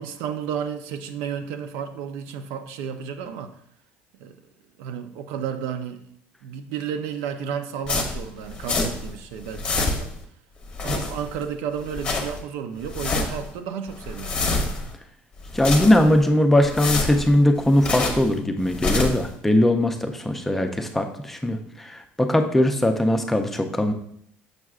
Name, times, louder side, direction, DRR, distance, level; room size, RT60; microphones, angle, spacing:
voice 1, 0.0-3.6 4.2-4.3 4.8-6.1 6.4-10.1 10.8-14.3, right 7 dB, 85° right, 0.6 m, -32 dB
sound 1, 7.9-9.2 9.4-10.2 10.6-11.4 11.8-12.4 12.8-13.5 13.9-14.9 15.4-16.2 16.6-18.3 18.6-19.3, left 3 dB, 25° left, 0.8 m, -27 dB
voice 2, 15.5-23.9, left 1 dB, 5° left, 0.4 m, -20 dB
6.6 x 6.1 x 2.4 m
cardioid pair, 175°, 4 cm